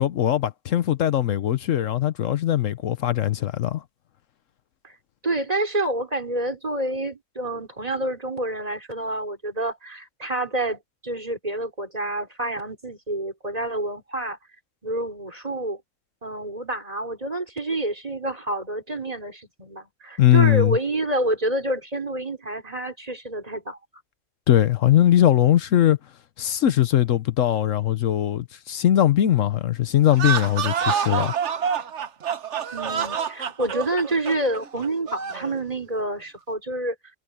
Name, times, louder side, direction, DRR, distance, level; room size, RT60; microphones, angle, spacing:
voice 1, 0.0-3.8 20.2-20.8 24.5-26.0 26.4-31.3, left 12 dB, 75° left, 1.1 m, -20 dB
voice 2, 5.2-14.4 14.8-15.8 16.2-23.8 32.7-37.0, right 1 dB, 30° right, 3.9 m, -28 dB
sound 1, 30.1-35.5, right 7 dB, 65° right, 1.3 m, -27 dB
omnidirectional pair, 1.4 m